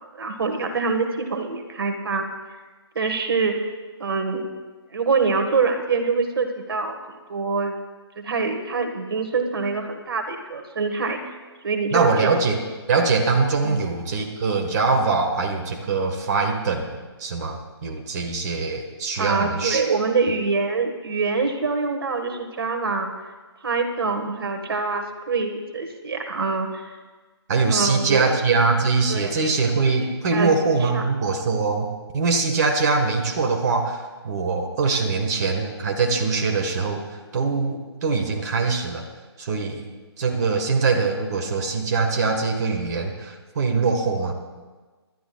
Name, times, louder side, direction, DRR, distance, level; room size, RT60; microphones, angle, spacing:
voice 1, 0.0-2.3 2.9-3.6 4.0-4.5 4.9-7.0 7.3-7.7 8.2-11.4 11.6-12.4 13.6-13.8 19.2-23.1 23.6-27.0 27.7-28.3 29.1-29.3 30.3-30.5 30.9-31.0, right 4 dB, 60° right, 5 dB, 1.5 m, -25 dB
voice 2, 11.9-12.6 12.9-19.8 27.5-39.1 39.4-39.9 40.2-44.3, right 4 dB, 40° right, 2 dB, 1.5 m, -23 dB
26.0 x 12.5 x 2.3 m, 1.3 s
figure-of-eight pair, 145°, 14 cm